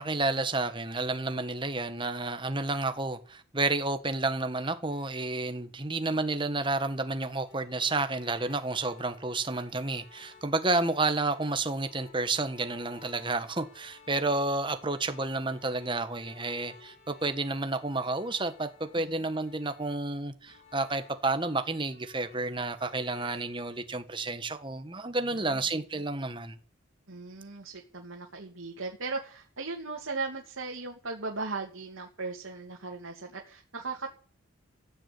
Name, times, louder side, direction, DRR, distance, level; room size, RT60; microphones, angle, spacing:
voice 1, 0.0-26.6, right 2 dB, 25° right, 1.4 m, -30 dB
sound 1, 4.9-23.8, left 5 dB, 70° left, 6.1 m, -56 dB
voice 2, 25.3-26.0 27.1-34.1, right 3 dB, 80° right, 2.4 m, -38 dB
15.0 x 9.8 x 8.5 m
head